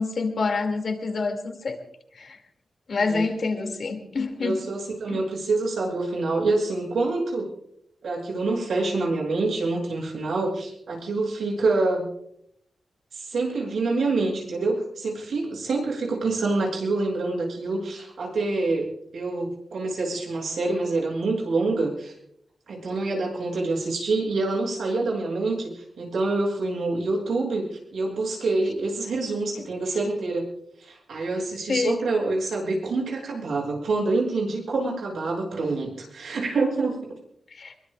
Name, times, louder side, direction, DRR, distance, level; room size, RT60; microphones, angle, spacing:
voice 1, 0.0-1.8 2.2-2.4 2.9-4.6 5.1-5.2 31.7-32.0 37.5-37.7, left 4 dB, 50° left, 5 dB, 2.3 m, -27 dB
voice 2, 4.4-7.5 8.0-12.1 13.1-22.1 22.7-27.6 27.9-30.4 30.8-37.0, right 3 dB, 80° right, -1 dB, 7.1 m, -26 dB
23.5 x 22.5 x 2.4 m, 0.72 s
wide cardioid pair, 165°, 0 cm